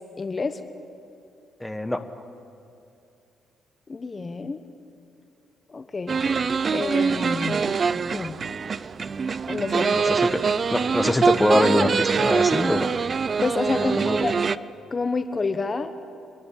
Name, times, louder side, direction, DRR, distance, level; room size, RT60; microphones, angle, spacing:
voice 1, 0.2-0.6 3.9-4.6 5.7-6.4 6.7-7.7 8.1-8.4 9.5-10.2 13.4-14.4 14.9-15.9, left 3 dB, 30° left, 10 dB, 1.0 m, -28 dB
voice 2, 1.6-2.0 9.9-10.4 10.7-12.9 13.7-14.2, left 1 dB, 10° left, 9 dB, 1.1 m, -23 dB
sound 1, 6.1-14.6, right 5 dB, 40° right, 0.4 m, -24 dB
28.0 x 11.0 x 8.9 m, 2.5 s
cardioid pair, 90°, 0 cm